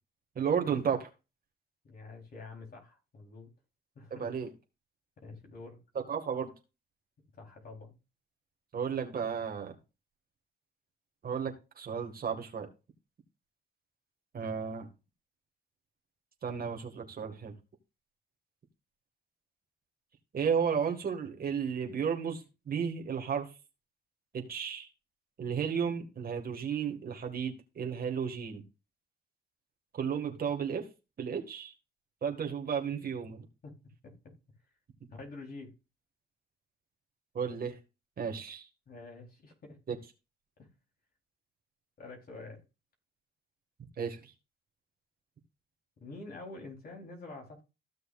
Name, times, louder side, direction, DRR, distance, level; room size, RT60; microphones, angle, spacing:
voice 1, 0.4-1.1 4.1-4.5 5.9-6.5 8.7-9.8 11.2-12.7 14.3-14.9 16.4-17.5 20.3-23.5 24.3-24.9 25.4-28.6 29.9-30.9 31.2-31.7 32.2-33.4 37.3-37.8 38.2-38.7 39.9-40.0 44.0-44.3, right 7 dB, 50° right, 2.0 m, -33 dB
voice 2, 1.8-3.5 4.0-4.3 5.2-5.8 7.4-7.9 33.6-33.7 34.0-34.1 35.1-35.7 38.9-39.8 40.6-40.7 42.0-42.6 46.0-47.6, left 3 dB, 50° left, 4.0 m, -47 dB
15.5 x 6.5 x 2.5 m
cardioid pair, 90°, 20 cm